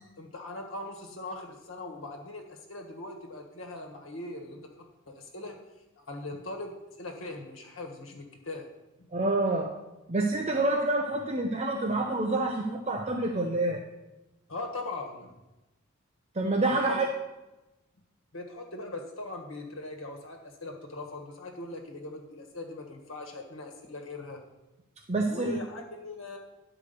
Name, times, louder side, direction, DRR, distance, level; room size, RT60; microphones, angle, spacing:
voice 1, 0.2-5.6 6.0-6.7 7.0-8.7 14.5-15.3 16.8-17.0 18.3-24.4 25.3-26.4, left 2 dB, 70° left, 3 dB, 1.5 m, -40 dB
voice 2, 9.1-9.7 10.1-13.8 16.3-17.1 25.1-25.6, right 2 dB, 35° right, 2 dB, 0.7 m, -27 dB
11.0 x 4.8 x 6.7 m, 1.0 s
head